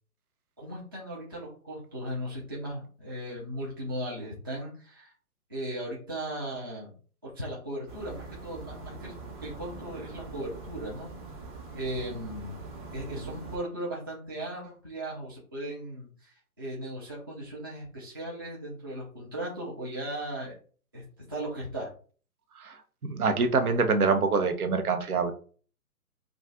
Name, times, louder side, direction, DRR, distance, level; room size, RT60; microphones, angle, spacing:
voice 1, 0.6-5.1 5.5-7.0 7.2-9.1 9.4-11.1 11.7-12.6 12.9-20.5 20.9-21.9, right 1 dB, 15° right, -6 dB, 0.4 m, -37 dB
sound 1, 7.9-13.6, right 3 dB, 35° right, 0.9 m, -43 dB
voice 2, 22.5-25.3, right 4 dB, 75° right, 6 dB, 0.8 m, -25 dB
2.4 x 2.3 x 3.8 m, 0.42 s
figure-of-eight pair, 130°, 44 cm